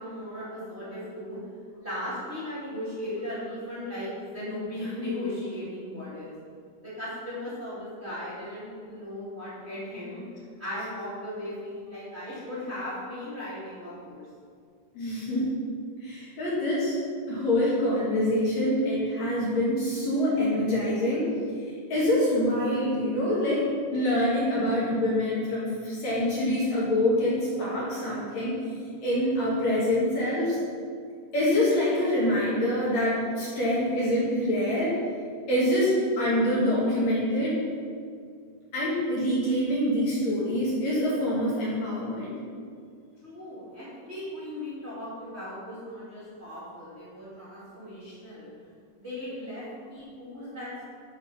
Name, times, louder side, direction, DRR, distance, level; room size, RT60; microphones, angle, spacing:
voice 1, 0.0-1.4 1.8-6.3 6.8-10.2 10.6-14.2 43.2-48.5 49.0-50.8, left 1 dB, 25° right, -10 dB, 1.3 m, -37 dB
voice 2, 14.9-15.5 16.0-17.0 17.2-21.3 21.9-28.6 29.0-30.6 31.3-34.9 35.5-37.6 38.7-42.4, left 1 dB, 50° left, -7 dB, 2.3 m, -25 dB
12.0 x 4.4 x 5.9 m, 2.2 s
omnidirectional pair, 5.4 m